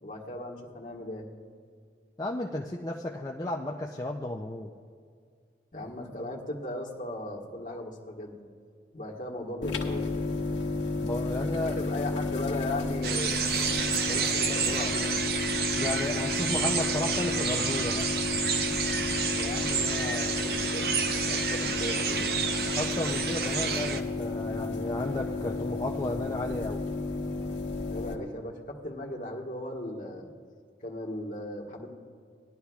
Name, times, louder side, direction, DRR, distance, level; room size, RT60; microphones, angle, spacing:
voice 1, 0.0-1.3 5.7-8.3 8.9-10.1 11.4-11.5 11.7-15.1 19.3-20.9 21.2-22.2 27.9-30.3 30.8-31.9, left 1 dB, 45° left, -2 dB, 1.4 m, -37 dB
voice 2, 2.2-4.7 11.0-11.8 15.8-18.1 22.8-26.8, left 1 dB, 20° left, -1 dB, 0.4 m, -33 dB
sound 1, 9.6-28.2, left 3 dB, 85° left, 1.2 m, -32 dB
sound 2, 13.0-24.0, right 6 dB, 55° right, 0.6 m, -30 dB
18.5 x 11.0 x 2.3 m, 2.1 s
head